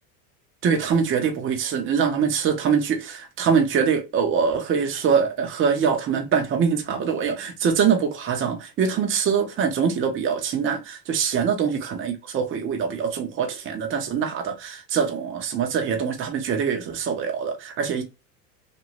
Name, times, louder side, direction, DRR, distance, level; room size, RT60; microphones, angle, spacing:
voice 1, 0.6-18.0, right 6 dB, 25° right, 0.7 m, -23 dB
2.6 x 2.5 x 2.9 m
supercardioid pair, 115°, 46 cm